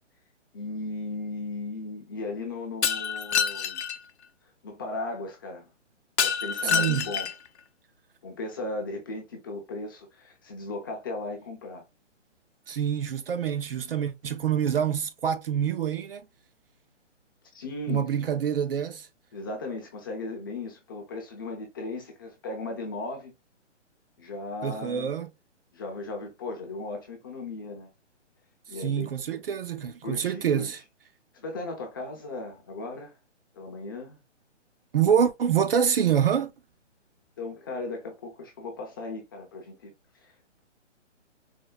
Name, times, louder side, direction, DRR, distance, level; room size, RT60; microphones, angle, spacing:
voice 1, 0.5-3.8 4.6-5.7 6.2-7.3 8.2-11.8 17.5-18.1 19.3-23.3 24.2-25.1 25.7-27.9 28.7-29.1 30.0-30.7 31.3-33.1 33.6-34.2 37.4-39.9 40.2-40.3, left 2 dB, 20° left, 0.5 m, -36 dB
Shatter, 2.8-4.0 6.2-7.5, left 7 dB, 65° left, 0.6 m, -27 dB
voice 2, 6.6-7.1 12.7-16.3 17.9-19.1 24.6-25.3 28.8-30.8 34.9-36.5, right 8 dB, 50° right, 0.5 m, -26 dB
4.4 x 2.0 x 2.3 m
hypercardioid pair, 150°, 36 cm